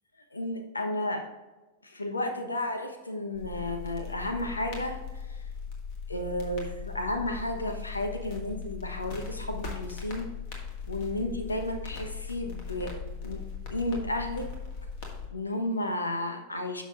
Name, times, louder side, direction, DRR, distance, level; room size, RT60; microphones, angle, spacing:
voice 1, 0.3-1.3 1.8-5.0 6.1-10.3 10.9-13.4 13.7-14.5 15.3-16.8, left 1 dB, 80° left, 5 dB, 1.1 m, -32 dB
sound 1, 3.3-15.3, left 6 dB, 45° left, 1.9 m, -39 dB
11.5 x 6.3 x 2.5 m, 1.1 s
figure-of-eight pair, 90°, 0 cm